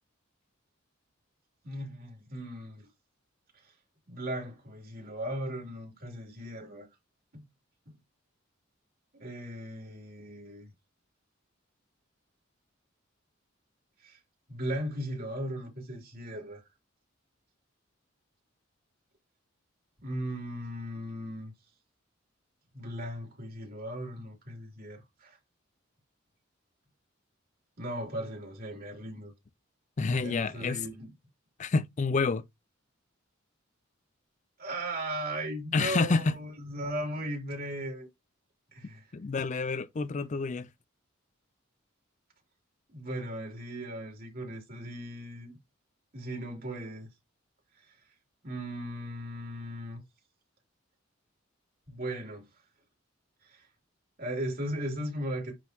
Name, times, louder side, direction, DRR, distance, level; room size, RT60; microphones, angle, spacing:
voice 1, 1.6-2.9 3.6-3.7 4.1-6.9 7.3-7.4 7.8-7.9 9.2-10.7 14.0-14.2 14.5-16.6 20.0-21.5 22.7-25.4 27.8-29.3 30.2-31.1 34.6-38.1 38.7-39.1 42.9-45.5 46.1-47.1 47.8-47.9 48.4-50.0 51.9-52.4 53.4-53.7 54.2-55.5, right 1 dB, 50° right, 3.3 m, -37 dB
voice 2, 30.0-30.8 31.6-32.4 35.7-36.3 39.1-40.7, left 4 dB, 35° left, 0.4 m, -28 dB
11.0 x 3.9 x 2.9 m
head